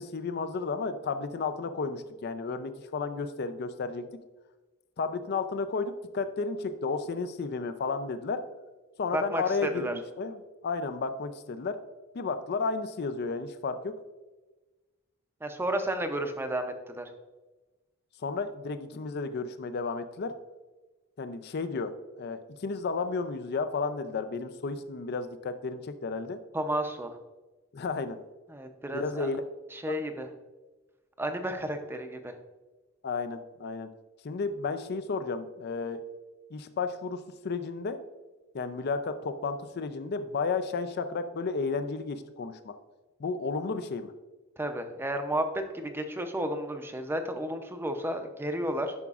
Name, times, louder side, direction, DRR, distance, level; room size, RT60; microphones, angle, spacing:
voice 1, 0.0-4.1 5.0-8.4 9.0-10.4 10.6-11.8 12.1-13.9 18.2-20.3 21.2-26.4 27.7-28.2 28.9-29.4 29.9-30.0 33.0-33.9 34.2-36.0 36.5-38.0 38.5-42.8 43.2-44.1, left 4 dB, 50° left, 10 dB, 0.4 m, -32 dB
voice 2, 9.1-9.9 15.4-17.1 26.5-27.2 28.5-29.3 29.7-30.3 31.2-32.4 44.6-48.9, right 1 dB, 10° right, 6 dB, 0.5 m, -32 dB
10.5 x 5.9 x 2.4 m, 1.2 s
head